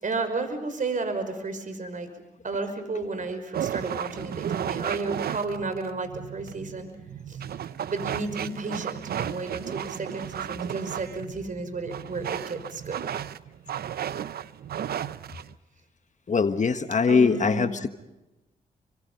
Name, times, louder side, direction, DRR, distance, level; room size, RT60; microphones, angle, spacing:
voice 1, 0.0-2.1 2.4-6.9 7.3-7.4 7.9-13.0 17.1-17.8, right 3 dB, 55° right, 9 dB, 5.5 m, -32 dB
sound 1, 3.5-15.5, right 9 dB, 75° right, 0.8 m, -34 dB
voice 2, 16.3-17.9, left 5 dB, 50° left, 9 dB, 1.5 m, -22 dB
30.0 x 25.5 x 5.5 m, 1.0 s
supercardioid pair, 50°, 16 cm